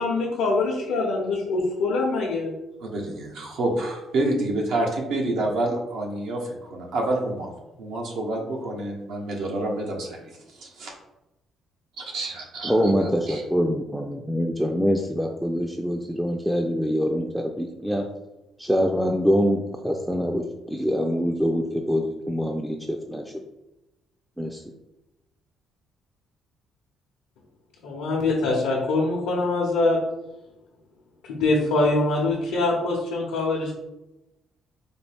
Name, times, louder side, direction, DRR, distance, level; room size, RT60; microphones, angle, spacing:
voice 1, 0.0-2.5 27.8-30.0 31.3-33.7, left 2 dB, 90° left, -3 dB, 0.7 m, -24 dB
voice 2, 2.8-7.5 7.8-10.9 12.0-13.4, right 2 dB, 75° right, 0 dB, 0.8 m, -28 dB
voice 3, 12.6-18.1 18.6-23.3 24.4-24.7, equal, 5° right, 2 dB, 0.4 m, -25 dB
4.2 x 2.3 x 3.4 m, 0.96 s
cardioid pair, 75°, 0 cm